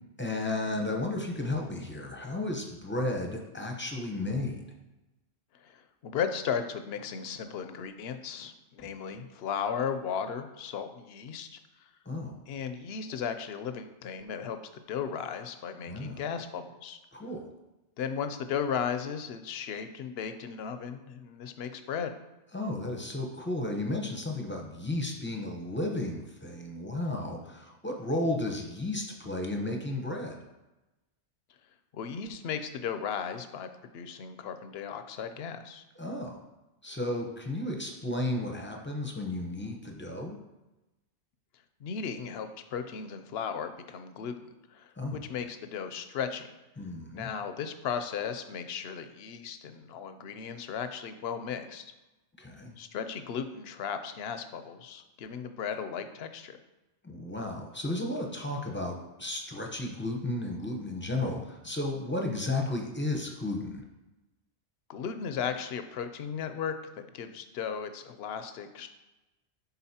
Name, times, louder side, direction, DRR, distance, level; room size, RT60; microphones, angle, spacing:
voice 1, 0.2-4.6 12.1-12.4 15.9-16.2 17.1-17.5 22.5-30.4 36.0-36.4 36.8-40.4 45.0-45.2 46.8-47.3 52.4-52.7 57.0-63.8, left 2 dB, 10° left, 1 dB, 0.7 m, -33 dB
voice 2, 5.5-11.9 12.5-17.0 18.0-22.2 31.9-35.8 41.8-44.3 44.7-46.5 47.1-51.8 52.8-56.6 64.9-68.9, left 7 dB, 70° left, 9 dB, 0.8 m, -36 dB
11.0 x 4.1 x 2.8 m, 1.0 s
omnidirectional pair, 1.2 m